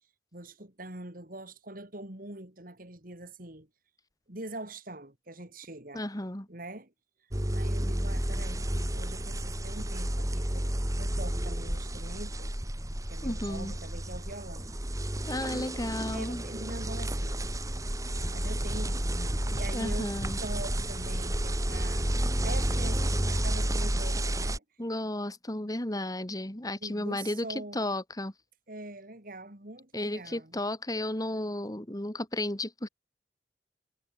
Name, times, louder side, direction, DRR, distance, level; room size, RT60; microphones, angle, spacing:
voice 1, 0.3-3.7 4.3-6.0 6.5-6.9 7.5-10.7 11.0-12.5 13.1-14.7 15.3-17.4 18.3-20.1 20.4-22.1 22.4-24.6 26.8-28.0 28.7-30.6, right 2 dB, 55° right, 3.9 m, -43 dB
voice 2, 5.9-6.5 13.2-13.7 15.3-16.4 19.7-20.4 24.8-28.3 29.9-32.9, left 1 dB, 20° left, 2.4 m, -33 dB
sound 1, 7.3-24.6, right 1 dB, 20° right, 3.2 m, -31 dB
head